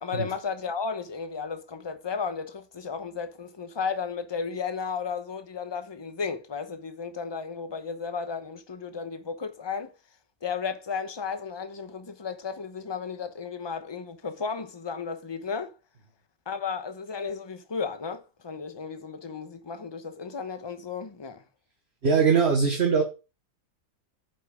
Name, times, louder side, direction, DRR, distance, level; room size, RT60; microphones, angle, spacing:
voice 1, 0.0-9.9 10.4-15.8 16.5-21.4, left 5 dB, 20° left, 0.7 m, -34 dB
voice 2, 22.0-23.0, right 5 dB, 40° right, 1.4 m, -21 dB
8.9 x 5.5 x 4.9 m
omnidirectional pair, 1.8 m